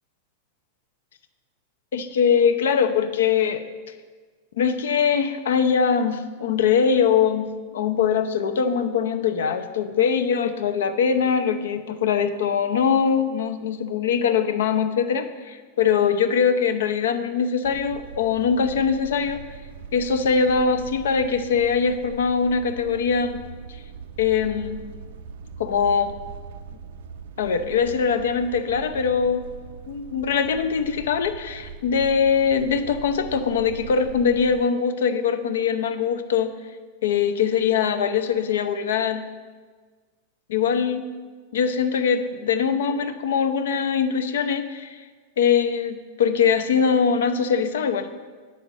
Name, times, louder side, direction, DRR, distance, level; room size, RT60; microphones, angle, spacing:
voice 1, 1.9-3.6 4.6-19.4 19.9-23.4 24.2-24.8 25.6-26.1 27.4-29.5 29.9-36.5 37.0-39.3 40.5-41.1 41.5-45.0 45.4-48.1, left 6 dB, 90° left, 9 dB, 0.7 m, -22 dB
sound 1, 17.6-34.6, right 6 dB, 65° right, 0.5 m, -41 dB
9.7 x 4.3 x 7.1 m, 1.5 s
supercardioid pair, 175°, 0 cm